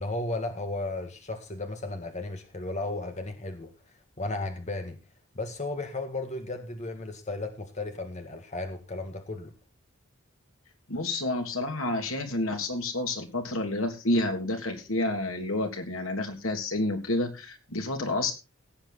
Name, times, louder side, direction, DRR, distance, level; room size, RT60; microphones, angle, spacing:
voice 1, 0.0-3.7 4.2-5.0 5.3-9.5, left 2 dB, 35° left, 1.8 m, -34 dB
voice 2, 10.9-18.3, left 2 dB, 80° left, 3.0 m, -29 dB
17.5 x 8.9 x 4.2 m
head